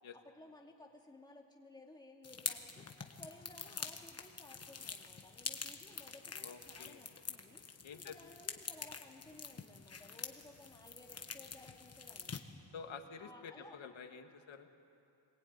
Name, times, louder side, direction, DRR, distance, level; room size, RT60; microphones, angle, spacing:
voice 1, 0.1-12.3 13.2-13.8, left 2 dB, 10° left, 0 dB, 2.2 m, -58 dB
sound 1, 2.2-12.4, left 5 dB, 30° left, 1.2 m, -46 dB
voice 2, 6.4-7.0 7.8-8.2 12.7-14.7, left 6 dB, 65° left, 5 dB, 1.8 m, -49 dB
25.0 x 20.0 x 9.4 m, 2.7 s
wide cardioid pair, 170°, 49 cm